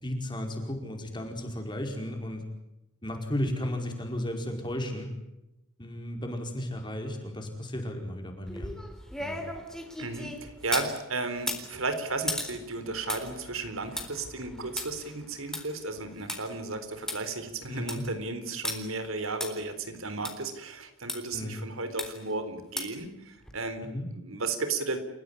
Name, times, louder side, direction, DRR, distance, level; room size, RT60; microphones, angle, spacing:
voice 1, 0.0-2.4 3.0-5.1 5.8-8.7 9.2-9.4 17.7-18.0 21.3-21.6 23.8-24.1, left 1 dB, 20° left, 3 dB, 5.0 m, -34 dB
sound 1, 8.5-10.9 11.4-16.4 16.8-16.9 17.1-17.2 17.6-18.1 18.6-18.8 19.4-19.5 20.2-20.3 21.1-21.2 22.0-22.3 22.8-23.0 23.5-23.6, left 1 dB, 5° left, 3.9 m, -36 dB
voice 2, 10.0-23.8 24.2-25.0, right 3 dB, 80° right, 9 dB, 4.0 m, -34 dB
29.5 x 16.5 x 9.8 m, 0.91 s
head